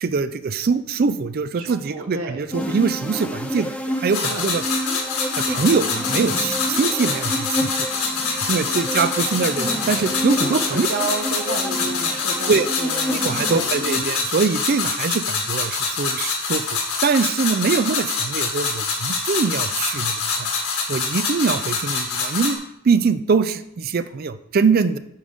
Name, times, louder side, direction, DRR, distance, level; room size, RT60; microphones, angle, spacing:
voice 1, 0.0-4.6 5.3-7.9 8.4-10.9 12.5-12.7 13.1-16.7 17.0-20.5 20.9-22.6 22.8-25.0, right 5 dB, 40° right, 13 dB, 0.4 m, -23 dB
voice 2, 1.5-2.5 4.3-4.4 8.5-9.0 10.3-13.2 13.5-13.9, right 2 dB, 75° right, 3 dB, 1.2 m, -31 dB
sound 1, 2.5-14.3, equal, 5° left, 0.6 m, -29 dB
sound 2, 4.1-22.5, left 4 dB, 75° left, 1.9 m, -25 dB
8.8 x 6.6 x 3.5 m, 0.76 s
head